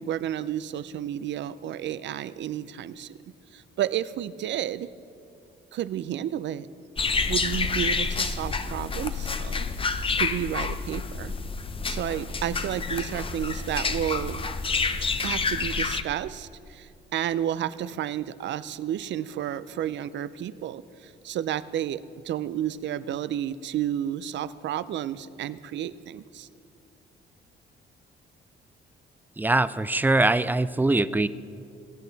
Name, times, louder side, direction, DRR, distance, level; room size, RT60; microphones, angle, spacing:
voice 1, 0.0-3.2 3.5-4.9 5.7-6.7 7.3-9.7 10.2-11.4 11.8-14.4 15.2-26.5, right 11 dB, 65° right, 16 dB, 0.5 m, -31 dB
sound 1, 7.0-16.0, left 4 dB, 25° left, 0.6 m, -28 dB
voice 2, 29.4-31.3, right 2 dB, 10° right, 15 dB, 0.3 m, -22 dB
21.0 x 8.4 x 4.0 m, 2.4 s
cardioid pair, 90°, 20 cm